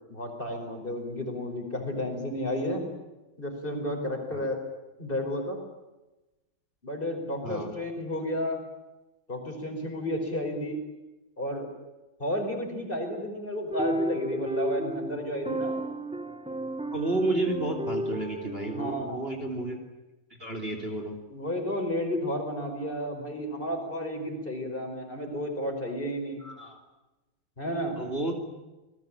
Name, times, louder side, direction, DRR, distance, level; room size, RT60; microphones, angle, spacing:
voice 1, 0.1-2.9 3.4-4.6 5.0-5.6 6.8-8.6 9.3-10.8 11.4-11.7 12.2-15.7 18.7-19.3 21.3-26.4 27.6-28.0, equal, 25° left, 4 dB, 5.1 m, -32 dB
voice 2, 7.4-7.8 16.9-19.8 20.4-21.2 26.4-26.8 28.0-28.4, right 2 dB, 30° right, 4 dB, 3.3 m, -31 dB
sound 1, 13.7-19.0, right 1 dB, 5° right, 0.7 m, -33 dB
28.5 x 20.0 x 9.0 m, 1.1 s
omnidirectional pair, 2.2 m